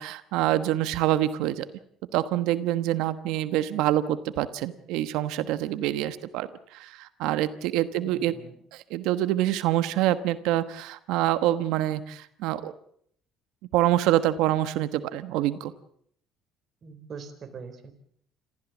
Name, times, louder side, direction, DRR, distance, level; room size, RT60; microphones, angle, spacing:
voice 1, 0.0-1.6 2.1-6.5 6.7-8.3 8.7-12.7 13.7-15.7, right 13 dB, 85° right, 13 dB, 1.1 m, -26 dB
voice 2, 7.9-8.6 16.8-17.9, right 5 dB, 45° right, 5 dB, 4.2 m, -43 dB
27.0 x 15.0 x 7.3 m, 0.67 s
cardioid pair, 100°, 0 cm